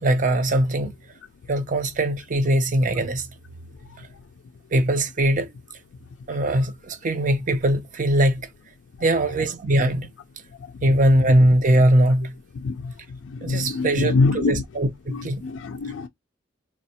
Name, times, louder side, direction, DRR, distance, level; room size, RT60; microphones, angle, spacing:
voice 1, 0.0-0.9 1.5-3.3 4.7-5.5 6.3-8.5 9.0-10.1 10.8-12.3 13.4-15.4, right 1 dB, 45° right, 0.6 m, -21 dB
voice 2, 13.3-14.5 15.1-16.1, left 4 dB, 75° left, 0.3 m, -24 dB
4.0 x 2.3 x 2.7 m
head